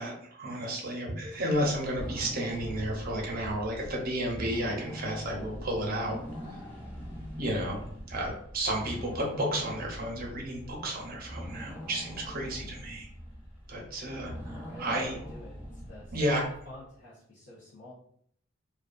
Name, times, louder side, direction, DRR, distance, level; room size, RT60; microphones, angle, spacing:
voice 1, 0.0-6.2 6.5-6.6 7.4-7.8 8.1-13.1 13.7-15.1 16.1-16.4, right 1 dB, 50° right, -1 dB, 0.7 m, -32 dB
sound 1, 1.3-16.7, equal, 10° left, 0.8 m, -42 dB
voice 2, 14.6-16.2 16.6-17.9, left 1 dB, 60° left, -10 dB, 0.7 m, -48 dB
2.4 x 2.3 x 2.3 m, 0.65 s
head